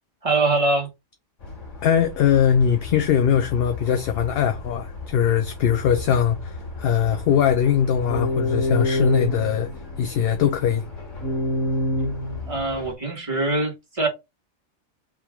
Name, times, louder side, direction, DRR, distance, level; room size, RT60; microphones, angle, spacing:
voice 1, 0.2-0.9 12.5-14.1, right 2 dB, 30° right, 1.6 m, -23 dB
sound 1, 1.4-12.9, left 1 dB, 90° left, 1.7 m, -30 dB
voice 2, 1.8-9.7 10.0-10.8, left 8 dB, 60° left, 0.7 m, -21 dB
3.7 x 2.9 x 4.6 m
omnidirectional pair, 1.2 m